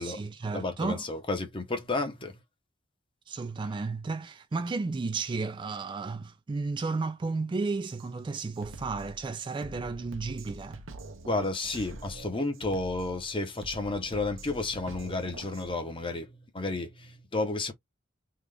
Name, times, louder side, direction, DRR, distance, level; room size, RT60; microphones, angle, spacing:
voice 1, 0.0-1.0 3.3-10.8, right 3 dB, 25° right, 0.3 m, -33 dB
voice 2, 0.5-2.3 11.3-17.7, left 2 dB, 25° left, 0.8 m, -32 dB
Drum kit, 7.9-8.1 8.5-15.7, right 2 dB, 85° right, 0.8 m, -45 dB
3.8 x 2.3 x 3.3 m
head